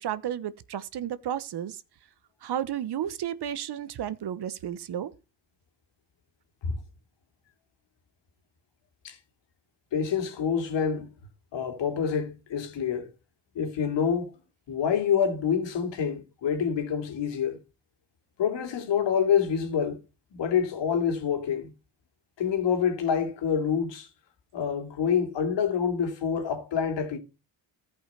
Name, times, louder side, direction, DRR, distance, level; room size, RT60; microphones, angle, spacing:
voice 1, 0.0-1.8 2.4-5.1, right 10 dB, 65° right, 1.1 m, -32 dB
voice 2, 9.9-11.1 11.5-13.1 13.5-14.3 14.7-17.6 18.4-20.0 20.3-21.7 22.4-24.1 24.5-27.2, left 7 dB, 75° left, 2.6 m, -27 dB
14.5 x 5.6 x 4.2 m
supercardioid pair, 65°, 43 cm